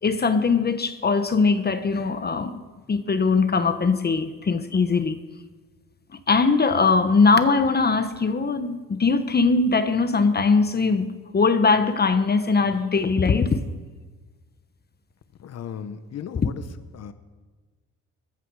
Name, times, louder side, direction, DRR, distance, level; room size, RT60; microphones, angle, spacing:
voice 1, 0.0-2.6 2.9-5.2 6.3-13.6, left 4 dB, 30° left, 9 dB, 1.1 m, -21 dB
voice 2, 15.4-16.6 16.9-17.1, left 8 dB, 55° left, 11 dB, 1.0 m, -36 dB
20.5 x 14.5 x 4.9 m, 1.4 s
cardioid pair, 90°, 30 cm